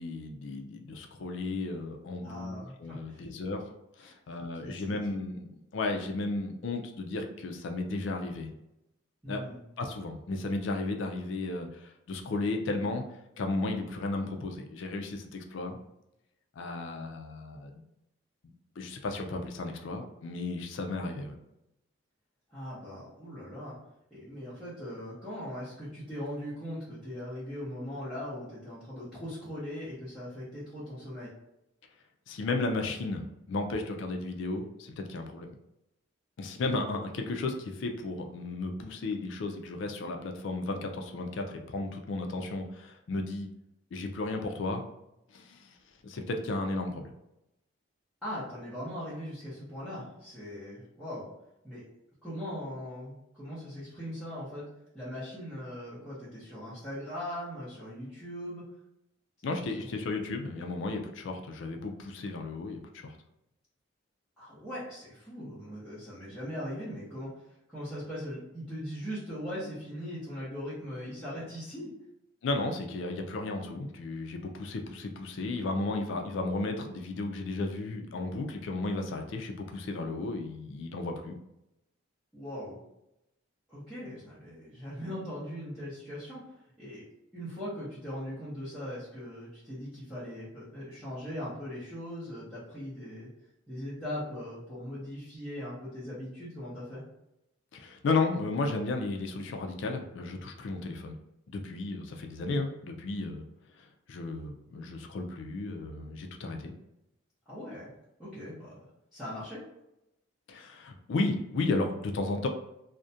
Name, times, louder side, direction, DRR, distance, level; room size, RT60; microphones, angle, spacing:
voice 1, 0.0-3.6 4.0-8.5 9.3-9.4 9.8-13.0 13.4-15.8 16.6-17.8 18.8-21.4 32.3-35.5 36.4-43.5 43.9-44.8 45.3-45.8 46.0-47.1 59.4-63.2 72.4-81.4 97.7-101.2 101.5-103.5 103.8-106.7 110.5-112.5, left 3 dB, 65° left, 4 dB, 0.3 m, -34 dB
voice 2, 2.2-3.2 4.0-4.1 4.6-4.9 9.2-9.6 22.5-23.8 24.1-31.3 48.2-51.3 51.6-51.8 52.2-54.7 54.9-58.6 64.4-67.3 67.7-71.9 82.3-82.8 83.7-87.0 87.3-93.3 93.7-97.0 107.5-107.9 108.2-108.8 109.1-109.6, equal, ahead, -13 dB, 0.7 m, -40 dB
2.4 x 2.1 x 2.7 m, 0.86 s
head